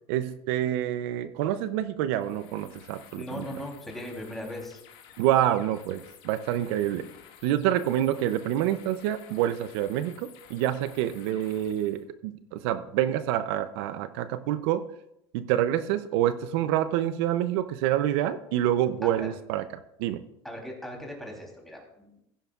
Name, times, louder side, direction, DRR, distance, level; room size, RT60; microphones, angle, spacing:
voice 1, 0.1-3.4 5.2-7.1 7.4-14.8 15.3-19.6 20.0-20.2, right 12 dB, 70° right, 11 dB, 0.6 m, -27 dB
sound 1, 2.1-12.0, left 9 dB, 65° left, 2.0 m, -53 dB
voice 2, 3.2-4.8 19.0-19.3 20.4-22.2, left 1 dB, ahead, -1 dB, 3.4 m, -38 dB
15.5 x 10.0 x 2.4 m, 0.80 s
supercardioid pair, 125°, 14 cm